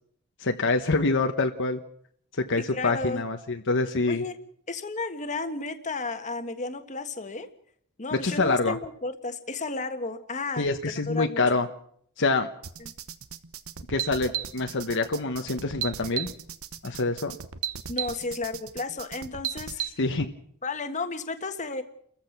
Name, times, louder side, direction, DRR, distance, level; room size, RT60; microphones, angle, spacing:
voice 1, 0.4-1.8 2.5-4.2 8.1-8.8 10.6-11.7 12.2-12.5 13.9-16.3 16.8-17.4 20.0-20.3, left 3 dB, 55° left, 5 dB, 1.1 m, -26 dB
voice 2, 2.7-3.2 4.1-4.4 4.7-7.5 8.0-11.6 12.8-12.9 17.9-19.8 20.6-21.8, left 3 dB, 35° left, 8 dB, 1.5 m, -33 dB
sound 1, 12.6-19.9, right 9 dB, 65° right, 1.0 m, -35 dB
29.5 x 15.0 x 6.0 m, 0.65 s
head